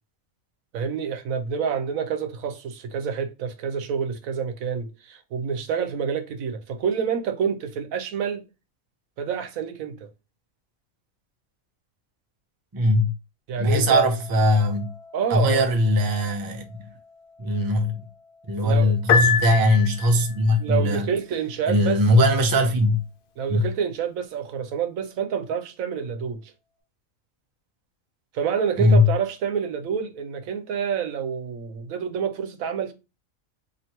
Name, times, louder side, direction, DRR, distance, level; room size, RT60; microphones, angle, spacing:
voice 1, 0.7-8.4 9.2-10.1 13.5-14.1 15.1-15.6 18.6-18.9 20.6-22.0 23.4-26.5 28.3-32.9, right 7 dB, 85° right, 1.1 m, -28 dB
voice 2, 12.7-13.1 13.6-14.9 15.3-16.7 17.4-18.0 18.5-21.1 21.7-23.0 23.5-23.7 28.8-29.1, left 1 dB, 30° right, 0.4 m, -20 dB
sound 1, 13.9-24.9, left 3 dB, 85° left, 1.1 m, -53 dB
Piano, 19.1-20.3, left 6 dB, 65° left, 0.5 m, -22 dB
3.0 x 2.9 x 4.3 m
omnidirectional pair, 1.4 m